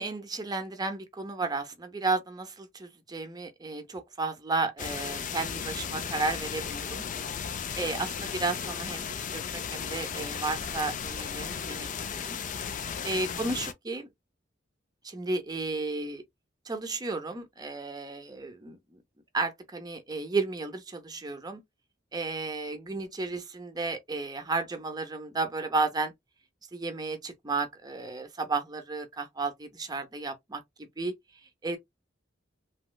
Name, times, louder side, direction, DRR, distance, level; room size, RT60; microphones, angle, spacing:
voice 1, 0.0-7.1 7.7-9.1 9.3-12.4 13.0-14.1 15.0-16.2 16.7-19.0 19.3-21.6 22.1-26.1 26.7-31.1 31.6-31.8, right 3 dB, 20° right, 0.6 m, -33 dB
sound 1, 4.8-13.7, left 7 dB, 40° left, 0.4 m, -35 dB
3.0 x 2.9 x 2.2 m
head